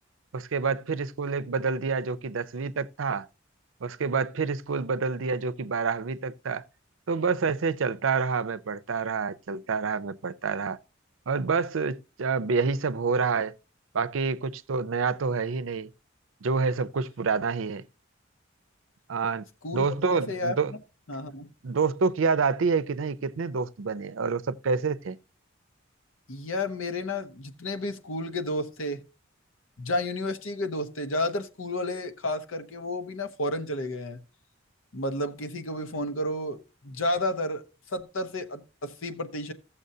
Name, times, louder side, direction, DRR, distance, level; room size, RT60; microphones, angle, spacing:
voice 1, 0.3-3.3 3.8-6.6 7.1-10.8 11.3-13.5 13.9-15.9 16.4-17.8 19.1-19.4 19.7-20.7 21.6-25.2, right 5 dB, 75° right, 0.5 m, -27 dB
voice 2, 19.6-19.9 20.3-20.6 21.1-21.5 26.3-29.0 29.8-34.2 34.9-37.6 37.9-39.5, left 1 dB, 90° left, 1.0 m, -31 dB
15.0 x 7.1 x 2.7 m
head